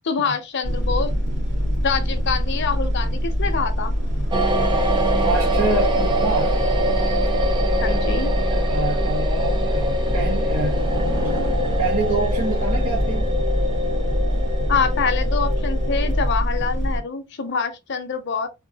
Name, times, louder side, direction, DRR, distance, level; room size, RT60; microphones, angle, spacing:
voice 1, 0.0-1.1 1.8-3.9 7.8-8.3 14.7-18.5, left 5 dB, 55° left, 0.6 m, -25 dB
sound 1, 0.6-17.0, equal, 60° right, 1.6 m, -23 dB
sound 2, 4.3-16.2, equal, 20° right, 0.5 m, -25 dB
voice 2, 5.2-6.6 7.9-10.8 11.2-11.4 11.8-13.3, right 3 dB, 85° right, 0.7 m, -27 dB
3.6 x 2.5 x 2.7 m
head